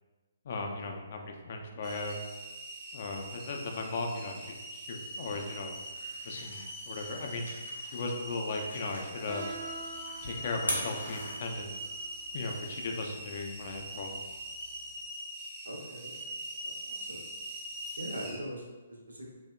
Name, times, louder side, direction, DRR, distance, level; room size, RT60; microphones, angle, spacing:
voice 1, 0.4-2.2 2.9-5.7 6.2-7.5 7.8-9.5 10.2-11.7 12.3-14.4, left 3 dB, 45° left, 2 dB, 0.3 m, -37 dB
sound 1, 1.8-18.4, right 1 dB, 20° right, 0.5 m, -42 dB
sound 2, 5.0-12.0, left 1 dB, 85° left, 0.7 m, -42 dB
Guitar, 9.3-15.0, right 2 dB, 25° left, 0.7 m, -46 dB
voice 2, 15.7-16.4 16.6-17.2 18.0-19.3, equal, 75° right, -1 dB, 0.5 m, -42 dB
2.7 x 2.0 x 2.2 m, 1.2 s
figure-of-eight pair, 130°, 0 cm